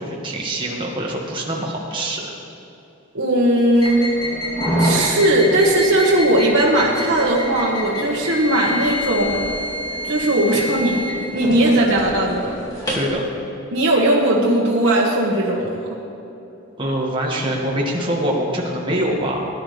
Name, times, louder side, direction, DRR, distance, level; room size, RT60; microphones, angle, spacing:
voice 1, 0.0-2.2 12.9-13.2 16.8-19.5, right 1 dB, 20° right, -3 dB, 1.8 m, -24 dB
voice 2, 3.1-4.0 4.8-9.5 10.1-11.0 11.3-12.5 13.7-15.8, right 1 dB, 65° right, -5 dB, 1.6 m, -18 dB
sound 1, 3.8-13.1, equal, 20° left, 2.4 m, -26 dB
18.5 x 10.5 x 3.4 m, 2.9 s
head